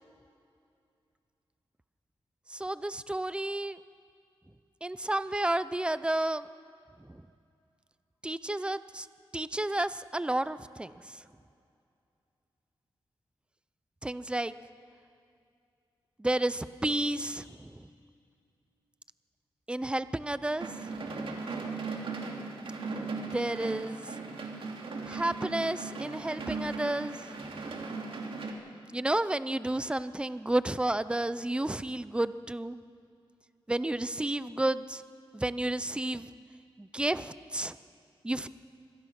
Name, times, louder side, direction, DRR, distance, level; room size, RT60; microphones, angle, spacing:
voice 1, 2.5-3.8 4.8-6.5 7.1-7.2 8.2-9.1 9.3-10.9 14.0-14.5 16.2-17.9 19.7-20.7 23.2-24.1 25.1-27.2 28.9-32.8 33.7-35.0 35.3-36.3 36.8-37.8 38.2-38.5, right 1 dB, 10° right, 14 dB, 0.6 m, -31 dB
sound 1, 20.6-28.5, right 4 dB, 75° right, 2.5 m, -38 dB
25.0 x 17.5 x 5.9 m, 2.5 s
wide cardioid pair, 120°, 9 cm